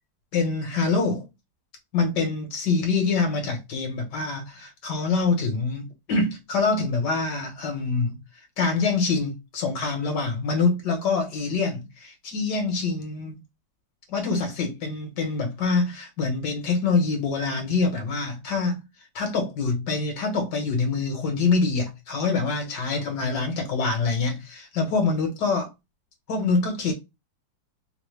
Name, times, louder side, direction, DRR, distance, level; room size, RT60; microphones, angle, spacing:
voice 1, 0.3-1.2 1.9-8.2 8.6-13.4 14.1-18.8 19.1-25.7 26.3-26.9, left 4 dB, 60° left, 1.4 m, -25 dB
3.9 x 2.0 x 3.1 m
omnidirectional pair, 2.4 m